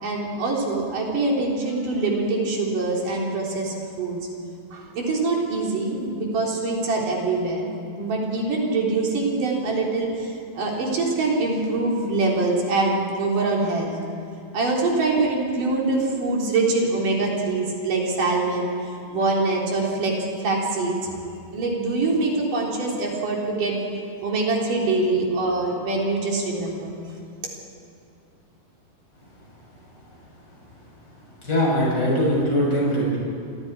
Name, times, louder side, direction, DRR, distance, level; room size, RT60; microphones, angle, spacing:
voice 1, 0.0-4.2 4.7-14.0 14.5-21.1 21.5-23.8 24.2-26.9, right 3 dB, 70° right, -2 dB, 4.9 m, -24 dB
voice 2, 31.4-33.2, equal, 30° left, -5 dB, 8.0 m, -21 dB
28.0 x 24.5 x 4.8 m, 2.5 s
omnidirectional pair, 4.0 m